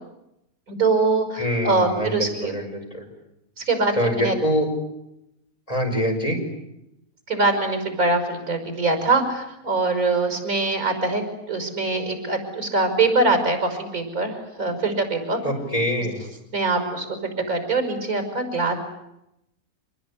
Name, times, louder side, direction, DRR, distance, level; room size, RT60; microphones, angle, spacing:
voice 1, 0.7-2.5 3.6-4.3 7.3-11.2 11.5-15.4 16.5-18.7, right 3 dB, 85° right, 6 dB, 6.3 m, -23 dB
voice 2, 1.4-3.1 4.0-4.7 5.7-6.4 15.4-16.2, equal, 25° left, 1 dB, 5.8 m, -24 dB
27.0 x 20.5 x 9.9 m, 0.85 s
omnidirectional pair, 1.5 m